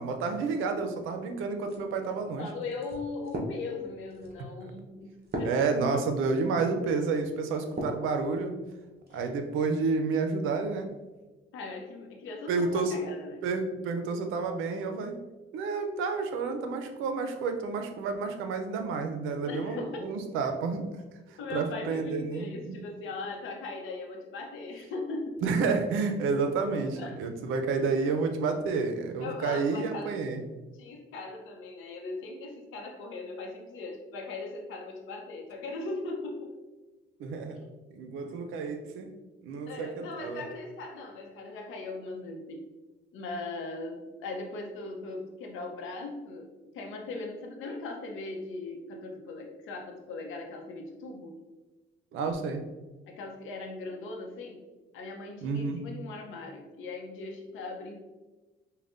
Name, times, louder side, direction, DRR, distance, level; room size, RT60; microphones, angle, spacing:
voice 1, 0.0-2.5 4.6-4.7 5.4-8.5 9.1-10.9 12.5-12.9 13.4-15.2 15.5-20.8 21.3-22.8 25.4-30.4 37.2-37.6 37.9-39.1 39.4-40.4 52.1-52.6 55.4-55.8, right 4 dB, 90° right, 6 dB, 0.5 m, -30 dB
sound 1, 1.6-8.1 8.6-9.3, equal, 55° right, 0.8 m, -40 dB
voice 2, 2.4-6.0 9.1-9.2 11.5-13.4 19.4-20.1 21.4-25.4 26.9-27.2 27.8-27.9 29.2-30.1 30.7-36.5 37.6-37.7 39.7-42.7 43.1-51.4 53.1-54.6 54.9-57.9, left 3 dB, 85° left, 2 dB, 0.7 m, -39 dB
5.3 x 2.2 x 2.5 m, 1.2 s
cardioid pair, 90°, 20 cm